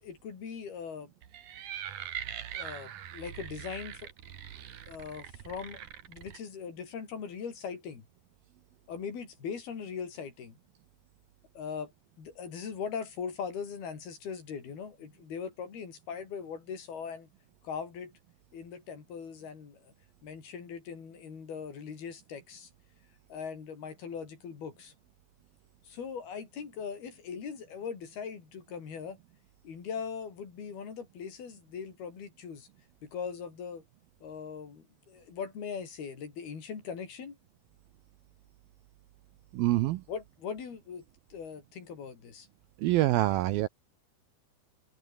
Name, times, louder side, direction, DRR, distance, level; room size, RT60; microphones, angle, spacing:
voice 1, 0.0-1.1 2.5-4.1 4.9-5.8 6.1-8.1 8.9-10.6 11.5-11.9 12.2-17.3 17.6-18.1 18.5-19.9 20.2-22.7 23.3-24.9 25.8-29.2 29.6-32.7 33.0-33.8 34.2-37.4 40.1-41.0 41.3-42.5, left 6 dB, 60° left, 6.4 m, -40 dB
sound 1, 1.2-6.4, right 10 dB, 55° right, 2.7 m, -42 dB
voice 2, 39.5-40.0 42.8-43.7, right 17 dB, 80° right, 2.2 m, -25 dB
omnidirectional pair, 5.0 m